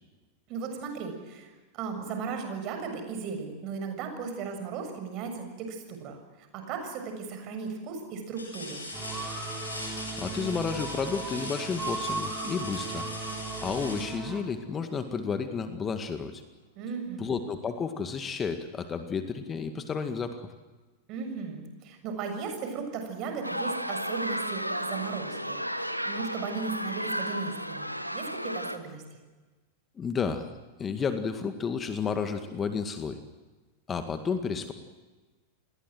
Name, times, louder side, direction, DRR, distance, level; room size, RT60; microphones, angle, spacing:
voice 1, 0.5-6.2 6.5-8.8 16.7-17.3 21.1-29.0, right 5 dB, 40° right, 6 dB, 7.0 m, -36 dB
sound 1, 6.6-7.0 7.6-7.7 8.3-15.0 16.8-16.9 17.4-18.4 19.7-19.8, left 2 dB, 80° left, 7.8 m, -41 dB
sound 2, 8.9-14.4, right 4 dB, 15° right, 6.8 m, -37 dB
voice 2, 10.2-13.1 13.6-16.4 17.2-20.5 30.0-30.5 30.8-33.2 33.9-34.7, left 5 dB, 20° left, 8 dB, 1.9 m, -31 dB
sound 3, 23.4-28.8, equal, 90° right, 1.4 m, -33 dB
29.5 x 21.0 x 7.8 m, 1.3 s
figure-of-eight pair, 90°, 0 cm